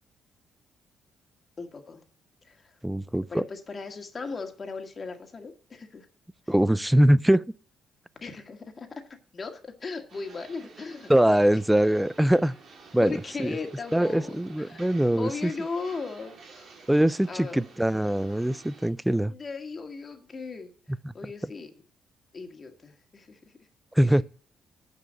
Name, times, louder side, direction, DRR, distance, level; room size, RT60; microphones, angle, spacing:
voice 1, 1.6-2.0 2.4-2.8 3.3-6.1 6.5-6.6 8.2-9.0 9.3-11.5 13.0-14.9 15.2-16.9 17.3-17.6 19.3-21.7 22.3-23.6 24.0-24.2, left 4 dB, 35° left, 1.8 m, -38 dB
voice 2, 2.8-3.4 6.5-7.4 11.1-12.5 12.9-13.1 13.4-13.5 13.9-15.5 16.9-19.3 24.0-24.2, right 1 dB, 5° right, 0.3 m, -22 dB
sound 1, 10.1-18.9, right 4 dB, 55° right, 3.0 m, -50 dB
9.2 x 5.4 x 7.5 m
cardioid pair, 90°, 0 cm